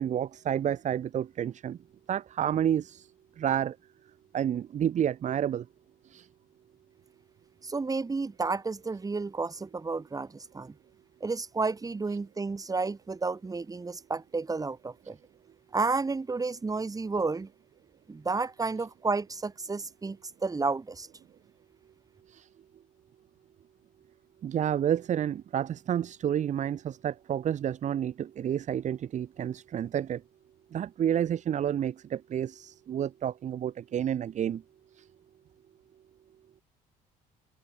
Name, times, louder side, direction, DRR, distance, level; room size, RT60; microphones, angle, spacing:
voice 1, 0.0-1.8 2.1-3.0 3.4-3.7 4.3-5.6 6.1-6.2 22.3-22.4 24.4-30.2 30.7-34.6, right 10 dB, 45° right, 1.1 m, -30 dB
voice 2, 7.6-10.7 11.2-15.2 15.7-17.5 18.1-21.1, right 4 dB, 20° right, 3.1 m, -31 dB
supercardioid pair, 90°, 16 cm